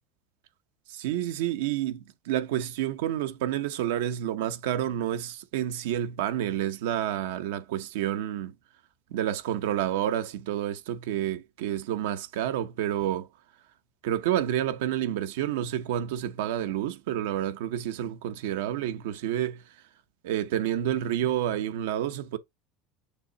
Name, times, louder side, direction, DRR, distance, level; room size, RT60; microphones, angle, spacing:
voice 1, 0.9-8.5 9.1-13.3 14.0-19.6 20.2-22.4, right 11 dB, 80° right, 0.9 m, -29 dB
6.8 x 2.8 x 4.9 m
hypercardioid pair, 90°, 0 cm